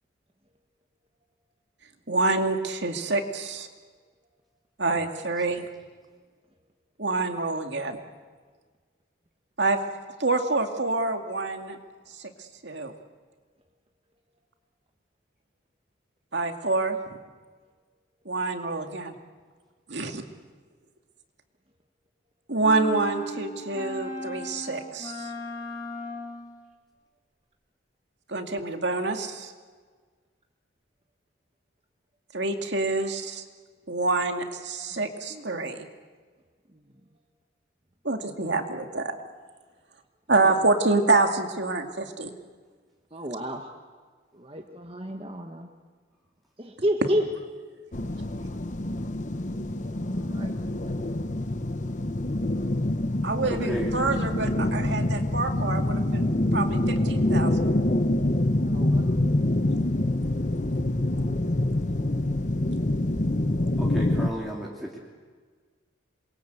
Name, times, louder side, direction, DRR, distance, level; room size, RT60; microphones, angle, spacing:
voice 1, 2.1-3.7 4.8-5.6 7.0-8.0 9.6-9.8 10.2-11.8 12.2-12.3 12.6-12.9 16.3-17.0 18.3-19.1 19.9-20.2 22.5-25.3 28.3-29.5 32.3-33.4 33.9-35.9 38.0-39.1 40.3-42.3 53.2-57.7, right 3 dB, 65° right, 5 dB, 2.4 m, -27 dB
sound 1, 22.6-26.5, left 1 dB, 20° left, 4.3 m, -36 dB
voice 2, 35.3-35.7 40.4-40.5 43.1-43.7 44.3-45.7 46.6-47.2 50.2-50.5 50.8-50.9 58.6-59.1, equal, 30° right, 3 dB, 1.5 m, -31 dB
sound 2, 47.9-64.3, left 1 dB, 40° left, 1.1 m, -26 dB
voice 3, 53.5-54.0 63.8-65.0, equal, ahead, -4 dB, 3.0 m, -34 dB
28.0 x 22.5 x 8.1 m, 1.5 s
head